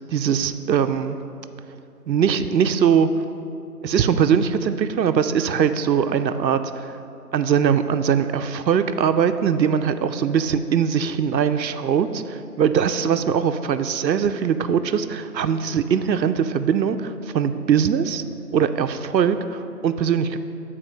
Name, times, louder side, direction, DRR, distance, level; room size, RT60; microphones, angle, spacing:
voice 1, 0.1-1.2 2.1-3.1 3.8-7.0 7.3-18.2 18.5-20.4, right 7 dB, 90° right, 11 dB, 0.6 m, -21 dB
7.4 x 4.2 x 5.0 m, 2.7 s
figure-of-eight pair, 170°, 50 cm